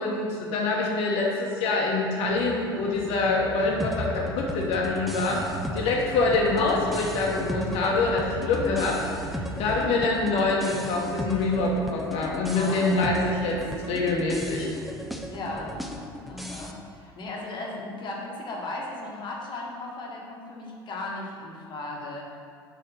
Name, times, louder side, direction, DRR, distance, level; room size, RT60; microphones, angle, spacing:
voice 1, 0.0-5.4 5.7-13.6 13.9-14.7, left 3 dB, 55° left, -2 dB, 0.9 m, -25 dB
sound 1, 2.2-9.8, equal, 15° right, 0.9 m, -39 dB
sound 2, 3.8-16.7, equal, ahead, 0.5 m, -37 dB
sound 3, 8.4-16.1, right 2 dB, 50° right, 1.4 m, -45 dB
voice 2, 9.7-10.0 12.5-13.3 15.3-15.7 16.3-22.4, left 2 dB, 40° left, -2 dB, 1.4 m, -36 dB
4.6 x 4.2 x 5.4 m, 2.2 s
hypercardioid pair, 70°, 12 cm